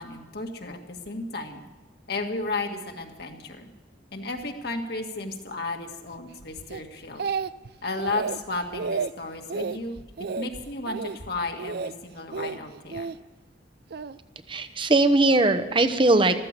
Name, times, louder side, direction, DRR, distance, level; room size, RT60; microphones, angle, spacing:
voice 1, 0.0-1.6 2.1-3.7 4.1-7.3 7.8-10.0 10.4-13.1, left 3 dB, 60° left, 4 dB, 1.8 m, -33 dB
Speech, 6.7-7.7 8.0-8.4 8.7-9.1 9.5-9.8 10.2-10.5 10.8-11.2 11.6-11.9 12.3-13.2 13.9-14.2, right 5 dB, 55° right, 0.4 m, -31 dB
voice 2, 14.5-16.4, right 2 dB, 25° right, 10 dB, 0.9 m, -20 dB
14.0 x 13.5 x 6.7 m, 1.2 s
head